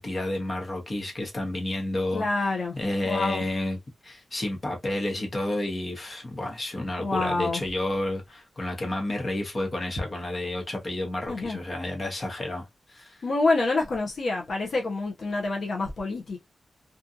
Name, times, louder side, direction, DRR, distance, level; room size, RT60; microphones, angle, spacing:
voice 1, 0.0-3.8 4.0-13.2, left 1 dB, 30° left, 0.9 m, -31 dB
voice 2, 2.1-2.8 3.1-3.4 7.0-7.6 11.3-11.6 13.2-16.4, left 3 dB, 65° left, 0.6 m, -27 dB
2.7 x 2.4 x 2.3 m
wide cardioid pair, 145°, 0 cm